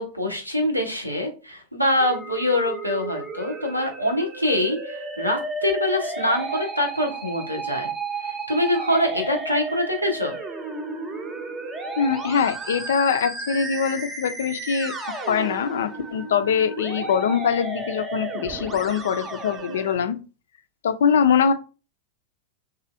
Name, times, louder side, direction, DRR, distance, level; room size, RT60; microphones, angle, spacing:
voice 1, 0.0-7.9 8.2-10.4, left 1 dB, 90° right, 2 dB, 0.8 m, -24 dB
Musical instrument, 2.0-20.0, right 3 dB, 20° right, 0.6 m, -33 dB
voice 2, 12.0-14.9 15.3-20.2 20.8-21.5, left 7 dB, 60° left, 9 dB, 0.4 m, -23 dB
3.0 x 2.6 x 2.5 m, 0.33 s
figure-of-eight pair, 90°, 0 cm